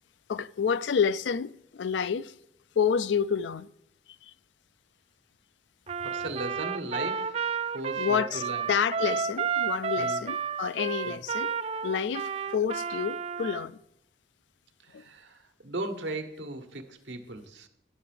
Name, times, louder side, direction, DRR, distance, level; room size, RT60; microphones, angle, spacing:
voice 1, 0.3-2.3 2.8-3.7 8.0-13.8 14.9-15.0, left 7 dB, 85° left, 0.4 m, -29 dB
Trumpet, 5.9-13.6, right 6 dB, 35° right, 0.3 m, -31 dB
voice 2, 6.0-8.7 10.0-10.2 11.1-11.2 14.8-17.7, right 2 dB, 90° right, 1.2 m, -37 dB
11.0 x 5.8 x 7.6 m
head